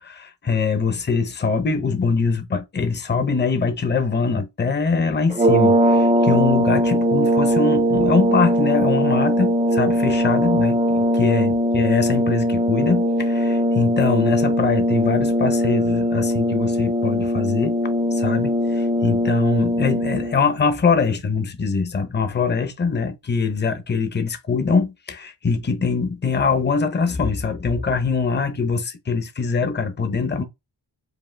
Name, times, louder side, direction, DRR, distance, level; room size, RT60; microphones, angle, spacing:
voice 1, 0.0-17.7 18.1-30.4, left 5 dB, 25° left, 0.7 m, -23 dB
sound 1, 5.3-20.4, equal, 15° right, 0.6 m, -20 dB
5.0 x 2.6 x 3.3 m
wide cardioid pair, 155°, 41 cm